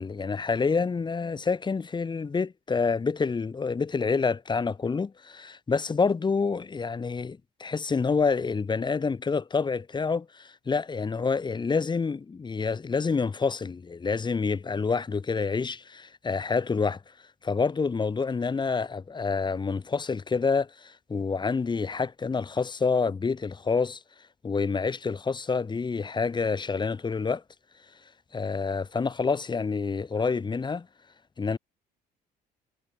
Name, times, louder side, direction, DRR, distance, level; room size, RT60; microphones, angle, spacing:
voice 1, 0.0-17.0 17.4-24.0 24.4-27.4 28.3-30.9 31.4-31.6, left 4 dB, 25° left, 4.7 m, -28 dB
cardioid pair, 110°, 17 cm